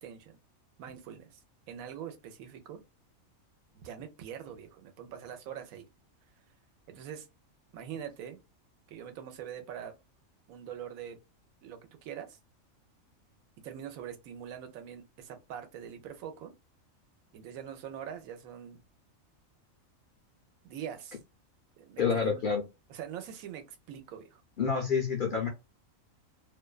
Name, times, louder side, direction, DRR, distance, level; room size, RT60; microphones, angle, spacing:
voice 1, 0.0-0.4 0.8-1.4 1.7-2.8 3.7-5.9 6.9-7.3 7.7-8.4 8.9-10.0 10.5-11.2 11.6-12.4 13.6-16.5 17.3-18.8 20.6-21.2 21.8-22.5 22.9-24.4, right 9 dB, 85° right, 1.0 m, -43 dB
voice 2, 22.0-22.7 24.6-25.5, left 6 dB, 60° left, 0.5 m, -28 dB
2.5 x 2.2 x 2.3 m
omnidirectional pair, 1.4 m